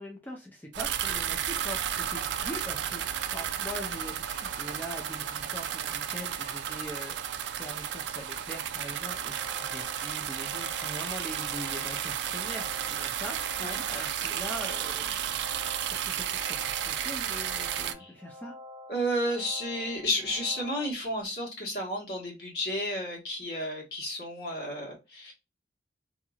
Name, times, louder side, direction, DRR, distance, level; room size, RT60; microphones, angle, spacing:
voice 1, 0.0-7.2 7.6-13.6 13.9-15.6 15.9-18.5, equal, 10° left, -1 dB, 0.5 m, -42 dB
sound 1, 0.7-17.9, right 9 dB, 75° right, 0.3 m, -33 dB
sound 2, 9.1-20.9, left 1 dB, 55° right, 0.8 m, -48 dB
voice 2, 17.7-18.1 18.9-25.3, equal, 60° left, -2 dB, 1.4 m, -32 dB
2.8 x 2.6 x 2.4 m, 0.25 s
head